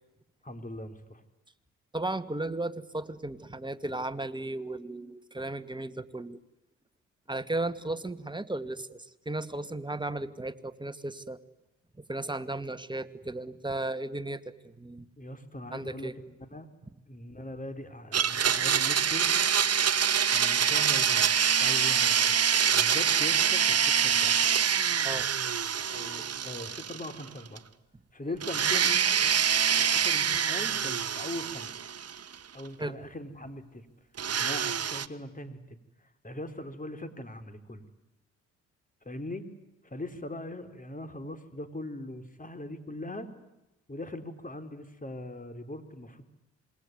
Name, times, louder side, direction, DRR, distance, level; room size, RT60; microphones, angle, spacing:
voice 1, 0.4-1.2 15.2-16.7 17.1-19.3 20.3-21.3 21.6-22.4 22.7-24.4 25.9-27.6 28.1-29.4 29.8-31.7 32.5-33.9 34.4-37.8 39.0-39.5 39.8-43.3 43.9-46.2, left 1 dB, 20° left, 9 dB, 4.3 m, -40 dB
voice 2, 1.9-6.4 7.3-11.4 12.1-15.1 15.7-16.1 25.0-25.3 32.8-33.0, right 2 dB, 15° right, 10 dB, 2.1 m, -35 dB
Domestic sounds home sounds, 18.1-27.3 27.6-27.7 28.4-32.4 34.2-35.1, right 8 dB, 45° right, 1.3 m, -25 dB
27.0 x 22.5 x 9.6 m, 0.94 s
hypercardioid pair, 45°, 36 cm